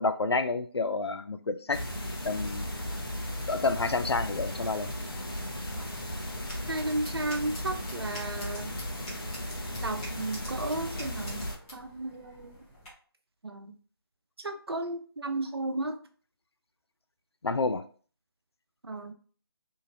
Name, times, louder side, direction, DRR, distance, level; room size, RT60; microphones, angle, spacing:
voice 1, 0.0-1.8 2.2-2.7 3.5-4.9 17.4-17.8, left 3 dB, 80° left, 0.4 m, -29 dB
sound 1, 1.7-11.5, left 1 dB, 55° left, 0.9 m, -36 dB
sound 2, 5.6-12.9, equal, 10° left, 0.7 m, -48 dB
voice 2, 6.7-8.8 9.8-11.5 11.7-12.5 13.4-13.7 14.4-16.0 18.9-19.1, right 2 dB, 70° right, 0.5 m, -34 dB
2.8 x 2.5 x 2.7 m
figure-of-eight pair, 155°, 13 cm